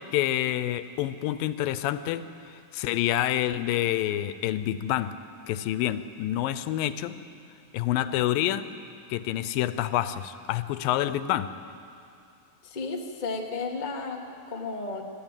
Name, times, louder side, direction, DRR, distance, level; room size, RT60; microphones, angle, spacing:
voice 1, 0.1-2.3 2.7-5.1 5.5-7.2 7.7-8.6 9.1-11.5, left 13 dB, 85° left, 13 dB, 2.4 m, -27 dB
voice 2, 12.6-15.0, left 3 dB, 50° left, 1 dB, 0.5 m, -33 dB
26.5 x 12.0 x 9.0 m, 2.6 s
omnidirectional pair, 4.0 m